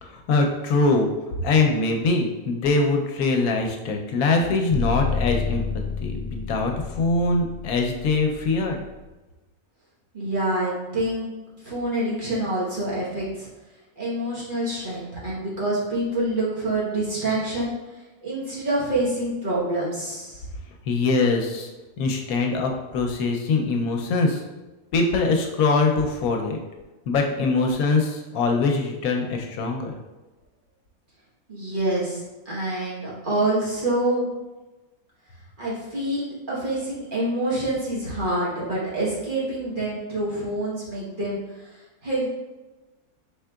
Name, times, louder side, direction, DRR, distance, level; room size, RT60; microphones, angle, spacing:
voice 1, 0.0-1.1 1.4-5.6 6.0-8.8 20.9-21.7 22.0-24.4 24.9-26.6 27.1-30.0, left 3 dB, 80° left, 2 dB, 1.0 m, -23 dB
sound 1, 4.7-8.8, left 4 dB, 40° left, 1.1 m, -29 dB
voice 2, 10.1-11.3 11.6-13.5 14.0-17.7 18.2-20.4 31.5-34.3 35.6-41.4 42.0-42.2, right 1 dB, 40° right, -7 dB, 1.2 m, -26 dB
4.7 x 3.6 x 2.2 m, 1.1 s
omnidirectional pair, 1.5 m